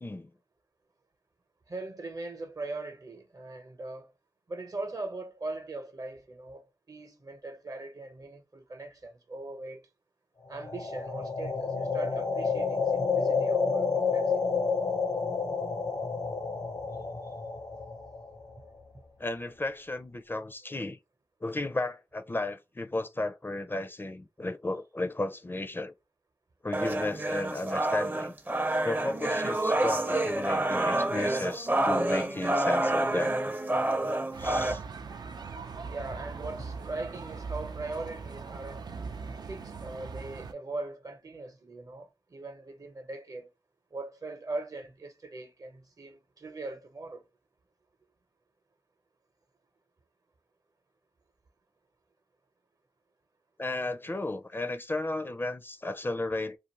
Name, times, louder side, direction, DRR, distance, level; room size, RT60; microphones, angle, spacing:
voice 1, 0.0-0.3 19.2-21.0 21.4-25.9 26.6-28.3 28.8-33.4 34.4-34.8 36.6-36.7 53.6-56.6, left 2 dB, 30° left, 0.4 m, -34 dB
voice 2, 1.7-4.1 4.5-9.9 10.5-14.6 35.8-38.9 39.4-43.5 43.9-47.3, right 2 dB, 55° right, 0.8 m, -40 dB
sound 1, 10.5-18.6, left 5 dB, 75° left, 0.7 m, -30 dB
sound 2, 26.7-34.7, right 1 dB, 25° right, 0.5 m, -28 dB
sound 3, 34.3-40.5, right 4 dB, 80° right, 0.4 m, -40 dB
2.5 x 2.5 x 2.9 m
cardioid pair, 45°, 7 cm